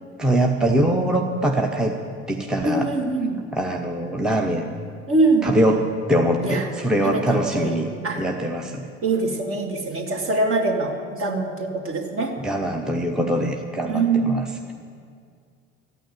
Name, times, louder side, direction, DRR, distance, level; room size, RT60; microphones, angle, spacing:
voice 1, 0.2-2.0 2.3-2.9 3.5-4.8 5.4-7.9 8.2-8.8 12.4-14.5, right 1 dB, ahead, 2 dB, 0.9 m, -22 dB
voice 2, 2.6-3.4 5.1-5.6 6.4-6.7 7.0-7.8 8.0-8.2 9.0-12.3 13.8-14.4, right 3 dB, 40° right, 2 dB, 2.2 m, -23 dB
14.0 x 9.2 x 9.4 m, 2.2 s
figure-of-eight pair, 60°, 34 cm